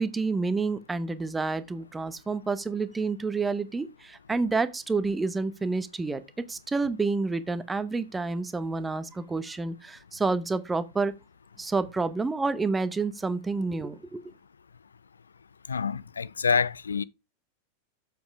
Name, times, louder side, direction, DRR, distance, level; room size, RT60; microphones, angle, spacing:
voice 1, 0.0-11.1 11.6-14.2, right 3 dB, 10° right, 1.0 m, -29 dB
voice 2, 15.7-17.0, left 5 dB, 75° left, 0.4 m, -27 dB
7.7 x 7.2 x 4.7 m
figure-of-eight pair, 90°, 0 cm